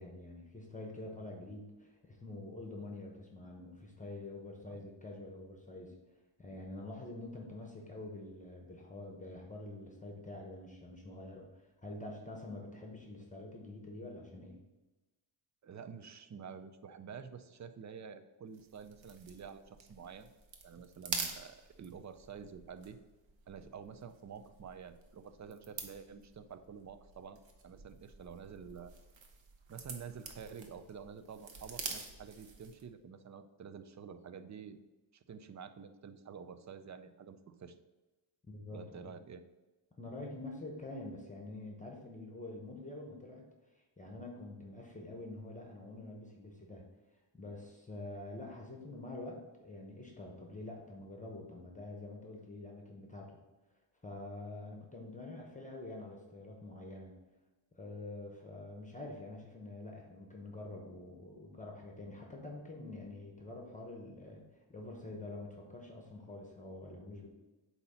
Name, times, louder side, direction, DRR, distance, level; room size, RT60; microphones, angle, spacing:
voice 1, 0.0-5.9 6.4-14.6 38.5-39.1 40.0-43.4 43.7-46.9 47.4-53.3 54.0-57.2 57.7-64.4 64.7-67.3, left 2 dB, 15° left, 1 dB, 1.0 m, -46 dB
voice 2, 15.6-20.3 20.6-23.0 23.5-28.9 29.7-34.8 35.1-37.8 38.7-39.4, right 6 dB, 40° right, 11 dB, 0.4 m, -49 dB
sound 1, 18.5-32.9, right 4 dB, 65° right, 1.1 m, -47 dB
8.2 x 2.8 x 5.6 m, 1.1 s
wide cardioid pair, 120°, 49 cm